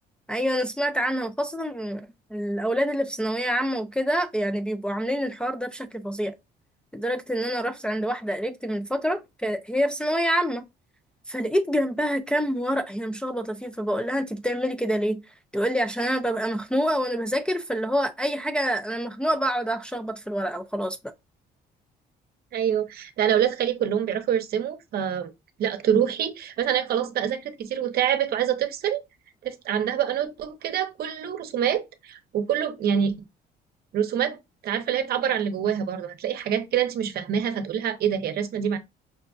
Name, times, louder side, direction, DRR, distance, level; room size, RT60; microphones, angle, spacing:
voice 1, 0.3-6.3 6.9-10.7 11.3-15.2 15.5-21.0, equal, 5° left, 0.4 m, -27 dB
voice 2, 22.5-25.3 25.6-29.0 29.4-33.1 33.9-34.4 34.6-38.8, right 9 dB, 60° right, 0.7 m, -26 dB
5.6 x 2.4 x 2.3 m
cardioid pair, 120°, 17 cm